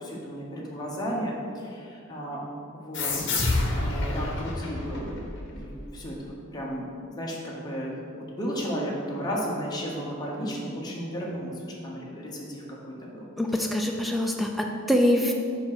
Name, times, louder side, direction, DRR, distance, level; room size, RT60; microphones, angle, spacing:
voice 1, 0.0-2.4 2.7-3.5 3.8-5.2 5.5-13.3 13.6-13.7, equal, 20° left, -4 dB, 1.1 m, -34 dB
sound 1, 2.9-6.2, left 2 dB, 55° left, 0.9 m, -29 dB
voice 2, 13.4-15.3, left 1 dB, ahead, 1 dB, 0.4 m, -24 dB
5.1 x 4.7 x 6.0 m, 2.5 s
head